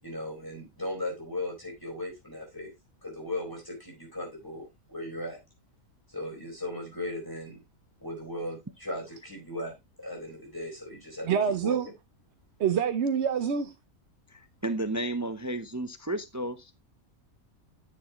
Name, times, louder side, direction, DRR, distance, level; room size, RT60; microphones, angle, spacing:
voice 1, 0.0-2.7 3.0-5.4 6.1-7.6 8.0-11.8, left 1 dB, 15° left, 4.2 m, -37 dB
voice 2, 11.3-11.9 12.6-13.7, right 7 dB, 55° right, 0.9 m, -26 dB
voice 3, 14.3-16.7, right 1 dB, 25° right, 0.3 m, -32 dB
10.0 x 6.8 x 2.9 m
omnidirectional pair, 1.5 m